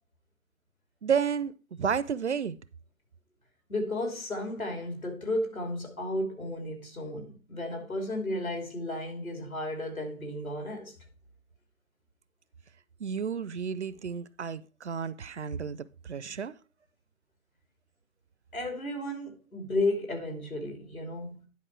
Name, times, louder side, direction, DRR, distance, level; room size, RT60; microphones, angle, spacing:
voice 1, 1.0-1.5 1.8-2.6 13.0-16.6, right 7 dB, 55° right, 0.5 m, -31 dB
voice 2, 3.7-10.9 18.5-21.4, left 1 dB, 80° left, 3.1 m, -33 dB
10.5 x 5.3 x 4.5 m
figure-of-eight pair, 135°, 41 cm